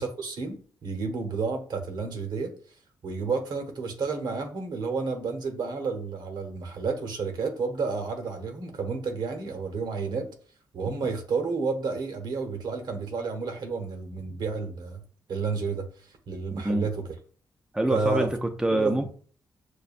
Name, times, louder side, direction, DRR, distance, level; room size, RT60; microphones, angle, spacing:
voice 1, 0.0-2.5 3.0-10.3 10.7-15.0 15.3-17.1 17.9-18.3 18.7-19.1, right 4 dB, 70° right, 1.0 m, -31 dB
voice 2, 16.5-16.9 17.7-19.1, right 1 dB, 10° right, 0.5 m, -26 dB
6.5 x 2.2 x 2.5 m
cardioid pair, 105°, 8 cm